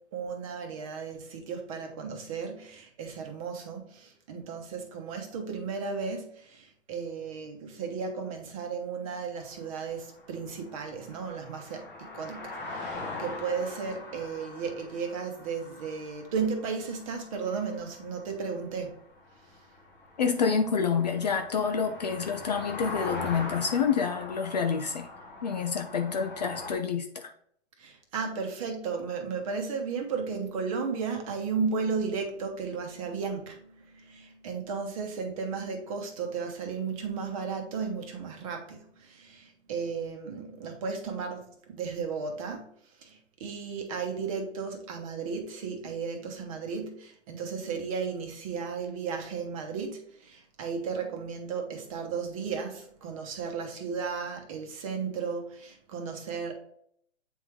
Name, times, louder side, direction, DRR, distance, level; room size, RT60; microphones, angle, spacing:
voice 1, 0.1-18.9 27.8-42.7 42.9-56.5, right 5 dB, 30° right, 1.1 m, -34 dB
sound 1, 9.4-26.7, left 3 dB, 5° left, 0.8 m, -42 dB
voice 2, 20.2-25.1 25.4-27.3, left 6 dB, 35° left, 0.5 m, -28 dB
8.2 x 3.8 x 3.1 m
hypercardioid pair, 155°, 35 cm